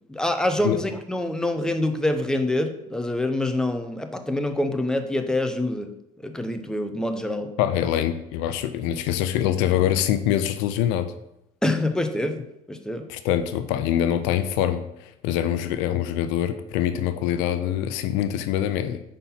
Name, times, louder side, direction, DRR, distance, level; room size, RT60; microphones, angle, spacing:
voice 1, 0.1-5.9 6.2-7.5 11.6-13.1, left 1 dB, 5° left, 7 dB, 0.8 m, -26 dB
voice 2, 7.6-11.1 13.1-19.0, left 11 dB, 75° left, 11 dB, 0.5 m, -24 dB
5.3 x 4.3 x 5.8 m, 0.82 s
supercardioid pair, 70°, 19 cm